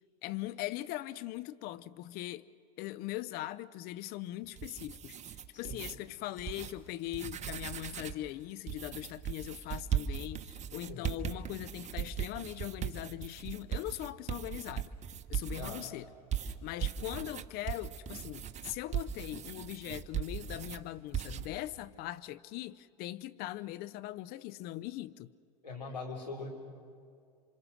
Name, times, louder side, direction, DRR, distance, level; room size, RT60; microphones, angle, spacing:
voice 1, 0.2-2.5 2.8-14.9 15.3-16.1 16.4-25.3, left 15 dB, 50° left, 0.7 m, -41 dB
sound 1, 4.4-5.9 6.4-6.7 7.1-8.2 8.7-15.9 16.3-20.8 21.1-21.5, right 9 dB, 35° right, 1.3 m, -38 dB
voice 2, 25.6-26.5, left 4 dB, 90° left, 4.0 m, -41 dB
28.0 x 25.5 x 6.3 m
hypercardioid pair, 80°, 21 cm